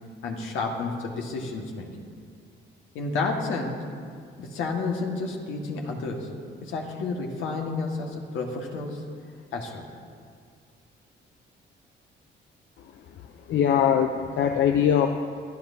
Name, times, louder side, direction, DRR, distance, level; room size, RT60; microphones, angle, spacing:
voice 1, 0.2-1.9 2.9-3.8 4.4-6.3 6.6-9.0 9.5-9.9, left 3 dB, 85° left, 1 dB, 1.7 m, -30 dB
voice 2, 13.5-15.1, left 9 dB, 70° left, 5 dB, 0.6 m, -21 dB
22.5 x 10.5 x 2.8 m, 2.2 s
cardioid pair, 90°, 20 cm